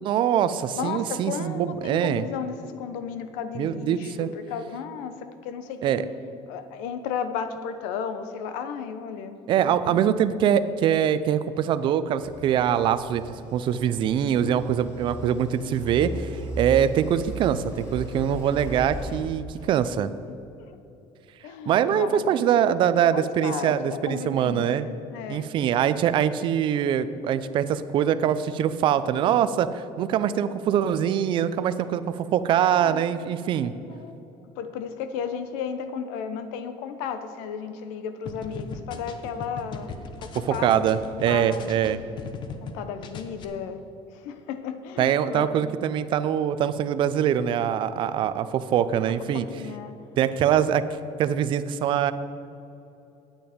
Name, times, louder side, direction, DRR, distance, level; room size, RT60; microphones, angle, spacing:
voice 1, 0.0-2.2 3.5-4.3 5.8-6.0 9.5-13.2 13.5-20.1 21.7-24.9 25.3-33.7 40.5-42.0 45.0-49.5 50.2-50.8 51.2-52.1, right 9 dB, 40° right, 13 dB, 0.4 m, -23 dB
voice 2, 0.7-6.1 6.5-10.0 19.6-19.7 20.3-20.8 21.4-22.5 23.1-25.5 32.6-33.1 33.9-34.1 34.6-39.9 40.2-41.0 41.2-41.8 42.6-43.8 44.1-45.5 49.3-50.0, left 7 dB, 85° left, 10 dB, 0.8 m, -34 dB
sound 1, 12.2-19.2, equal, 25° left, 2.2 m, -37 dB
sound 2, 38.3-42.7 43.0-43.4, left 5 dB, 40° left, 0.8 m, -38 dB
9.4 x 9.0 x 5.1 m, 2.9 s
cardioid pair, 155°, 12 cm